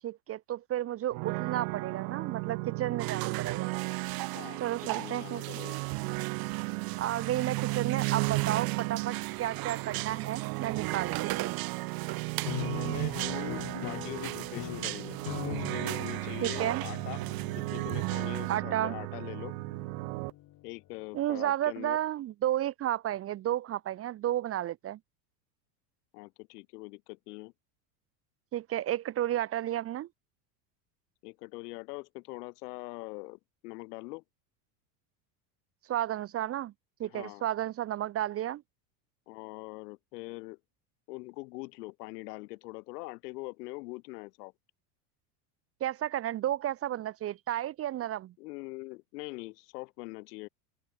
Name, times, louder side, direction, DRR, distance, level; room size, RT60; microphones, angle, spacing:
voice 1, 0.0-3.7 4.6-5.4 7.0-11.6 16.4-16.8 18.5-19.0 21.1-25.0 28.5-30.1 35.9-36.7 37.0-38.6 45.8-48.3, right 12 dB, 30° right, 0.7 m, -32 dB
sound 1, 1.1-20.3, right 39 dB, 65° right, 1.5 m, -35 dB
sound 2, 3.0-18.6, right 18 dB, 45° right, 2.1 m, -40 dB
voice 2, 4.3-5.8 12.4-17.2 17.5-19.5 20.6-22.0 26.1-27.5 31.2-34.2 37.0-37.4 39.3-40.6 41.1-44.5 48.4-50.5, left 24 dB, 75° left, 2.2 m, -43 dB
sound 3, 12.4-20.8, left 15 dB, 40° left, 2.3 m, -42 dB
open air
supercardioid pair, 125°, 48 cm